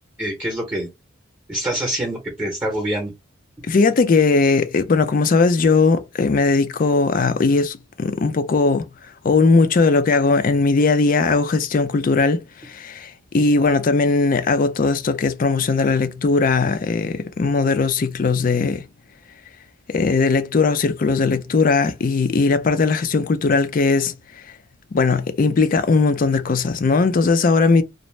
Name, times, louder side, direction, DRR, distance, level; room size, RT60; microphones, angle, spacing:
voice 1, 0.2-0.9 1.5-3.1, right 1 dB, 10° right, 0.7 m, -25 dB
voice 2, 3.7-8.9 9.2-18.8 19.9-24.1 24.9-27.8, left 4 dB, 45° left, 0.4 m, -18 dB
2.6 x 2.0 x 3.1 m
head